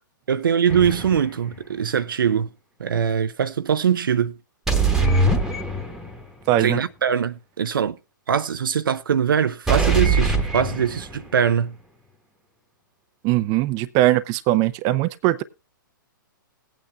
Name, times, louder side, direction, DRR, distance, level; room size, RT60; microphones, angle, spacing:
voice 1, 0.3-2.5 2.8-4.4 4.9-5.0 6.6-8.0 8.3-11.7, right 8 dB, 75° right, 0.6 m, -22 dB
sound 1, 0.7-1.4 4.7-6.2 9.7-11.3, right 3 dB, 5° right, 1.4 m, -22 dB
voice 2, 6.5-6.8 13.2-15.4, right 15 dB, 30° right, 0.6 m, -20 dB
18.5 x 8.9 x 2.3 m
hypercardioid pair, 125°, 11 cm